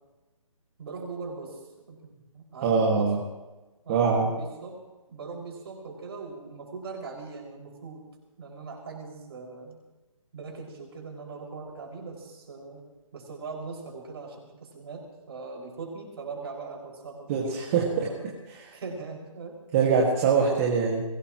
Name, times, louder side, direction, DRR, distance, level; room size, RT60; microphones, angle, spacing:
voice 1, 0.8-1.6 1.9-3.1 3.8-4.8 5.1-8.0 8.4-9.8 10.3-12.8 13.1-18.3 18.7-19.6, right 4 dB, 45° right, -1 dB, 6.1 m, -40 dB
voice 2, 2.6-3.2 3.9-4.3 17.3-18.1 18.5-18.7 19.7-21.0, right 5 dB, 25° right, -2 dB, 2.1 m, -23 dB
22.5 x 18.5 x 3.1 m, 1.1 s
figure-of-eight pair, 155°, 18 cm